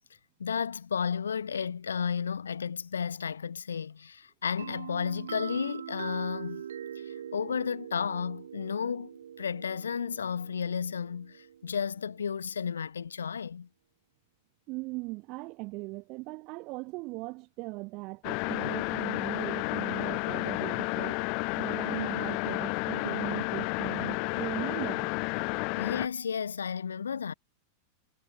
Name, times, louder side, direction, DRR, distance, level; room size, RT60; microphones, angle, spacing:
voice 1, 0.4-6.6 7.0-9.1 9.4-13.7 25.8-27.3, left 7 dB, 70° left, 0.8 m, -33 dB
sound 1, 4.6-12.2, right 9 dB, 65° right, 0.9 m, -43 dB
voice 2, 14.7-21.2 21.6-25.1, right 25 dB, 40° right, 0.5 m, -39 dB
sound 2, 18.2-26.1, left 32 dB, 45° left, 0.4 m, -31 dB
figure-of-eight pair, 90°, 0 cm